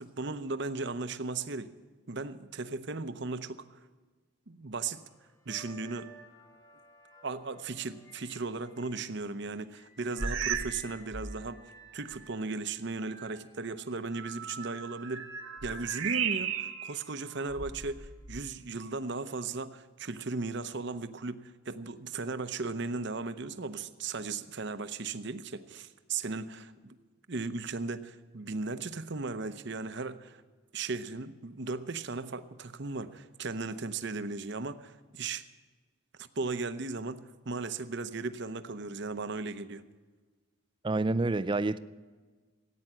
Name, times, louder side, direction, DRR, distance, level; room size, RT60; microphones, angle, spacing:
voice 1, 0.0-1.7 2.1-3.6 4.5-5.0 5.5-6.1 7.2-11.6 11.9-15.3 15.6-27.0 27.3-30.4 30.7-35.4 36.2-39.8, right 3 dB, 55° right, 0.8 m, -36 dB
sound 1, 4.9-9.3 9.7-17.8 18.9-19.1, right 5 dB, 15° left, 1.1 m, -53 dB
sound 2, 10.2-10.8 11.1-11.5 12.1-12.2 14.6-16.9 17.5-18.5, right 7 dB, 80° right, 1.7 m, -35 dB
voice 2, 40.8-41.8, right 2 dB, 25° right, 0.4 m, -28 dB
15.0 x 9.4 x 8.8 m
head